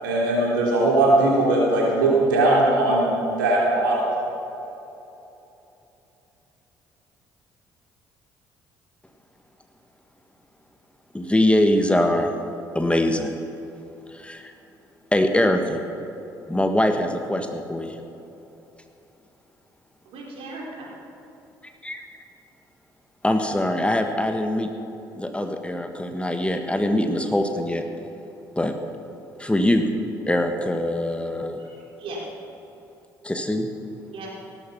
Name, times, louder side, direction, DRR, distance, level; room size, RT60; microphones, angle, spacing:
voice 1, 0.0-3.1 3.4-4.1, right 2 dB, 80° right, -4 dB, 3.4 m, -19 dB
voice 2, 11.1-12.3 12.7-13.4 14.1-14.5 15.1-15.8 16.5-18.0 21.8-22.1 23.2-24.7 25.1-27.9 28.6-28.7 29.4-29.9 30.3-31.6 33.2-33.7, left 1 dB, 10° left, 5 dB, 1.5 m, -23 dB
voice 3, 20.0-20.9 31.6-32.3 34.1-34.5, right 2 dB, 60° right, -3 dB, 4.7 m, -38 dB
17.5 x 13.5 x 5.8 m, 3.0 s
figure-of-eight pair, 50°, 11 cm